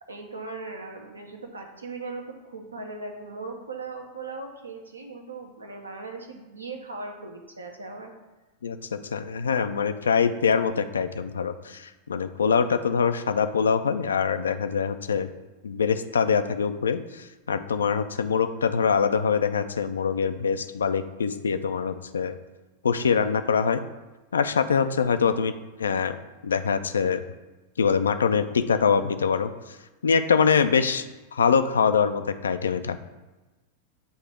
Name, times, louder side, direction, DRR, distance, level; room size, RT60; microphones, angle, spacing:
voice 1, 0.1-8.1, right 3 dB, 80° right, 3 dB, 0.8 m, -38 dB
voice 2, 8.6-15.3 15.6-17.0 17.5-22.4 22.8-23.8 24.3-25.5 25.8-27.2 27.8-29.5 30.0-31.0 31.3-33.0, left 6 dB, 70° left, 10 dB, 0.3 m, -24 dB
7.9 x 2.8 x 4.7 m, 1.1 s
figure-of-eight pair, 90°, 0 cm